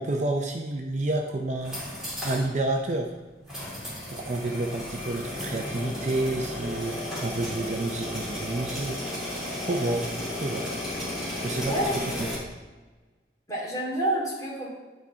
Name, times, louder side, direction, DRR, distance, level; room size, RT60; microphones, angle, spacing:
voice 1, 0.0-1.8 2.2-3.1 4.1-9.0 9.6-10.7 11.4-11.8 12.2-12.4, right 2 dB, 40° right, 3 dB, 0.5 m, -29 dB
sound 1, 1.5-2.5 2.8-2.9 3.5-12.4, left 1 dB, 5° right, 2.9 m, -34 dB
voice 2, 13.5-14.7, right 1 dB, 20° left, -5 dB, 2.5 m, -29 dB
11.0 x 4.3 x 4.7 m, 1.3 s
head